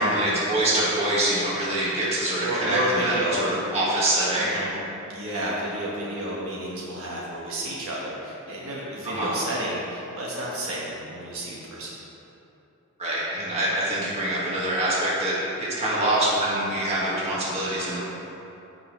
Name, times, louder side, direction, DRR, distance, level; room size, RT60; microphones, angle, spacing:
voice 1, 0.0-4.6 9.0-9.4 13.0-18.0, right 1 dB, 30° right, -7 dB, 2.0 m, -25 dB
voice 2, 2.4-3.8 4.4-4.7 5.1-11.9, right 1 dB, 70° right, -5 dB, 1.6 m, -31 dB
14.5 x 5.6 x 3.3 m, 2.9 s
head